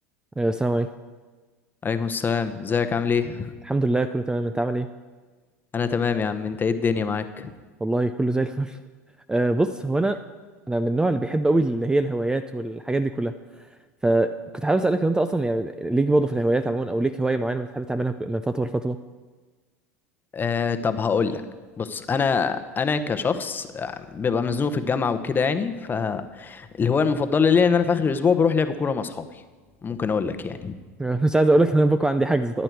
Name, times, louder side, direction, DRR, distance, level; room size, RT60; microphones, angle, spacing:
voice 1, 0.4-0.9 3.7-4.9 7.8-8.8 9.3-10.2 10.7-13.3 14.0-19.0 31.0-32.6, right 2 dB, 10° right, 10 dB, 0.4 m, -23 dB
voice 2, 1.8-3.5 5.7-7.5 20.3-21.4 21.8-29.4 29.8-30.8, left 5 dB, 25° left, 10 dB, 0.9 m, -24 dB
14.0 x 10.0 x 4.7 m, 1.4 s
hypercardioid pair, 85°, 8 cm